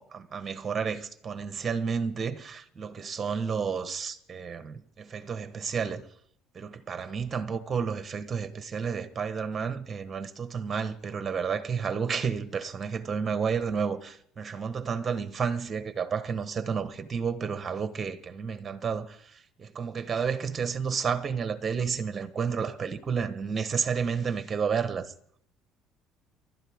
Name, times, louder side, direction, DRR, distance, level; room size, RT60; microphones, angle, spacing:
voice 1, 0.0-6.1 6.5-25.1, right 6 dB, 25° right, 1.2 m, -31 dB
30.0 x 12.0 x 3.6 m
cardioid pair, 125°, 0 cm